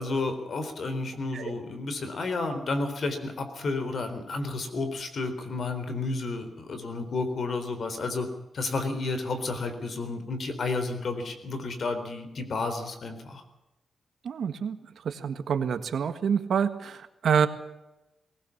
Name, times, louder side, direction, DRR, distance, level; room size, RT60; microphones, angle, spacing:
voice 1, 0.0-13.4, left 3 dB, 60° left, 8 dB, 3.9 m, -31 dB
voice 2, 14.2-14.8 15.0-17.5, right 7 dB, 75° right, 10 dB, 1.6 m, -27 dB
20.5 x 19.0 x 7.3 m, 0.96 s
wide cardioid pair, 105°, 0 cm